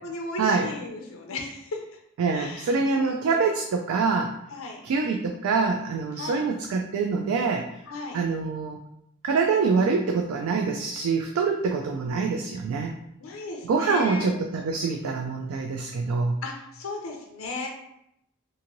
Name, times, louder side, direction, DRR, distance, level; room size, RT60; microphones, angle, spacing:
voice 1, 0.0-1.8 2.3-3.1 4.5-4.8 6.1-6.4 7.9-8.2 13.2-14.3 16.4-17.7, left 2 dB, 75° left, 1 dB, 0.5 m, -35 dB
voice 2, 2.2-4.3 4.8-7.6 8.1-8.8 9.2-12.9 13.7-16.4, right 4 dB, 85° right, 2 dB, 0.3 m, -25 dB
2.9 x 2.6 x 2.5 m, 0.79 s
head